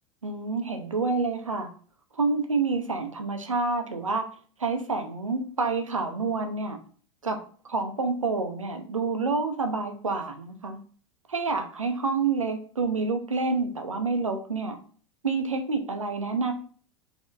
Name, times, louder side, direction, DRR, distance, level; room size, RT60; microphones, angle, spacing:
voice 1, 0.2-1.7 2.1-4.3 4.6-6.8 7.2-7.4 7.6-10.8 11.3-14.8 15.2-16.5, right 4 dB, 80° right, 5 dB, 0.6 m, -28 dB
4.1 x 2.8 x 2.5 m, 0.43 s
figure-of-eight pair, 85°, 16 cm